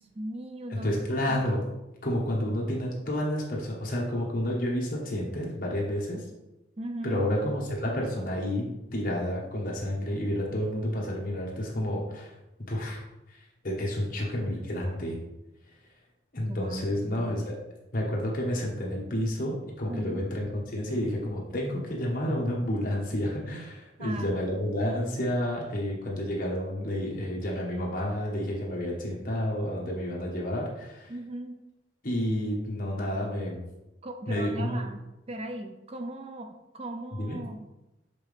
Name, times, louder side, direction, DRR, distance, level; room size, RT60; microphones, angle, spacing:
voice 1, 0.0-0.9 6.8-7.2 16.5-17.5 19.9-20.3 24.0-24.5 31.1-31.6 34.0-35.0 35.3-37.7, right 1 dB, 30° right, 6 dB, 0.4 m, -38 dB
voice 2, 0.7-1.6 2.0-6.2 7.0-12.3 12.7-13.0 13.6-15.2 16.3-17.4 17.9-31.1 32.0-33.6 34.3-34.8 37.1-37.4, left 1 dB, 45° left, -3 dB, 1.4 m, -30 dB
7.4 x 3.8 x 3.5 m, 0.96 s
head